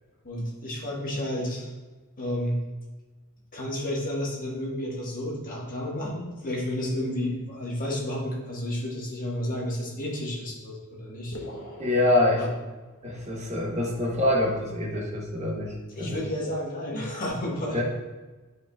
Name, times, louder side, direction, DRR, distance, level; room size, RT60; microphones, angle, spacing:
voice 1, 0.2-1.7 2.2-2.6 3.5-11.4 12.4-12.5 15.9-17.8, left 1 dB, 40° left, -3 dB, 1.5 m, -31 dB
sound 1, 11.3-13.3, left 1 dB, 70° left, 1.1 m, -43 dB
voice 2, 11.8-12.4 13.0-16.2 17.7-17.8, left 1 dB, 30° right, -1 dB, 1.0 m, -25 dB
11.0 x 4.7 x 2.4 m, 1.2 s
head